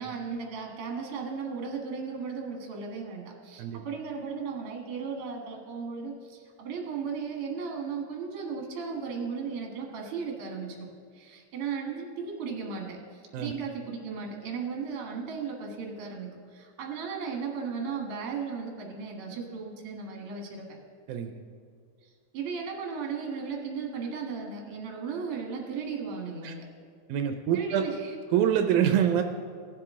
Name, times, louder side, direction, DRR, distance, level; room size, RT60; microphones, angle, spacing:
voice 1, 0.0-10.9 11.1-20.7 22.0-26.7 27.5-28.1, right 5 dB, 55° right, 0 dB, 2.1 m, -36 dB
voice 2, 27.1-27.8 28.3-29.2, right 9 dB, 85° right, 6 dB, 2.0 m, -25 dB
18.0 x 7.7 x 3.6 m, 2.1 s
omnidirectional pair, 3.4 m